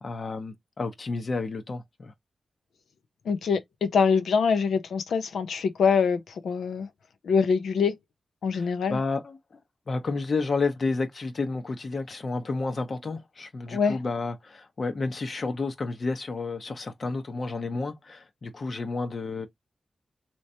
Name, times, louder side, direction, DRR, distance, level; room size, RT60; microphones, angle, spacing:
voice 1, 0.0-2.1 8.5-9.4 9.9-19.5, left 3 dB, 55° left, 0.9 m, -31 dB
voice 2, 3.3-6.9 7.2-8.0 8.4-9.0 13.7-14.0, left 5 dB, 90° left, 0.6 m, -24 dB
3.2 x 3.0 x 2.7 m
cardioid pair, 55°, 0 cm